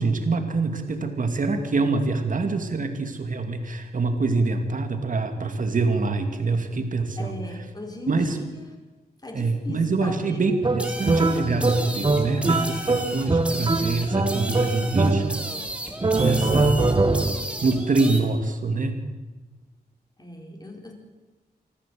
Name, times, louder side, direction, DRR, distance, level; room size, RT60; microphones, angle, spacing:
voice 1, 0.0-7.3 8.1-8.4 9.3-15.4 16.2-16.8 17.6-19.0, right 3 dB, 50° right, 6 dB, 2.5 m, -25 dB
voice 2, 7.2-8.7 9.2-10.6 20.2-20.9, left 2 dB, 25° left, 2 dB, 4.4 m, -38 dB
sound 1, 10.6-15.6 16.0-17.5, right 3 dB, 25° right, 1.6 m, -23 dB
sound 2, 10.8-18.2, right 1 dB, 5° right, 2.8 m, -34 dB
26.0 x 14.0 x 7.8 m, 1.2 s
wide cardioid pair, 100°, 17 cm